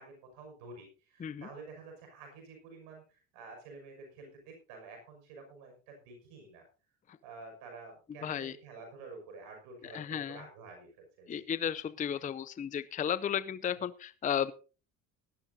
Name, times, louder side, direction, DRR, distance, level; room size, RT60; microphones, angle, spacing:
voice 1, 0.0-6.6 7.2-11.5 12.1-12.2, right 3 dB, 80° right, 3 dB, 6.1 m, -50 dB
voice 2, 8.2-8.6 9.8-10.4 11.3-14.5, left 9 dB, 20° left, 16 dB, 0.5 m, -34 dB
18.0 x 12.5 x 2.7 m, 0.34 s
supercardioid pair, 90°, 37 cm